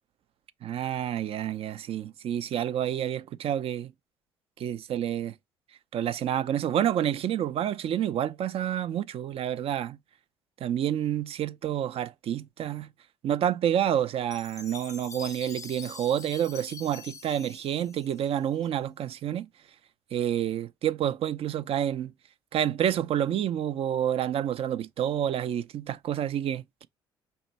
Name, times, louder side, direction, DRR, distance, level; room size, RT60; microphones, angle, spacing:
voice 1, 0.6-3.9 4.6-5.3 5.9-10.0 10.6-12.9 13.2-19.5 20.1-22.1 22.5-26.9, right 10 dB, 50° right, 0.5 m, -29 dB
Chime, 14.3-18.6, left 5 dB, 25° left, 0.5 m, -44 dB
4.6 x 2.9 x 3.9 m
hypercardioid pair, 55°, 13 cm